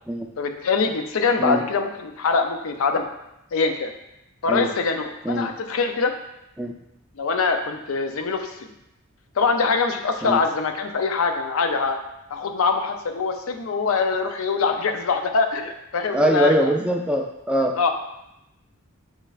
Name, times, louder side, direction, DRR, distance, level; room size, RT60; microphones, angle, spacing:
voice 1, 0.4-3.0 3.5-3.9 4.4-6.1 7.2-8.7 9.4-12.0 12.3-16.7 17.7-17.9, left 4 dB, 80° left, 6 dB, 0.5 m, -23 dB
voice 2, 16.1-17.9, right 1 dB, 5° right, 1 dB, 0.4 m, -22 dB
6.4 x 3.2 x 2.4 m, 0.86 s
head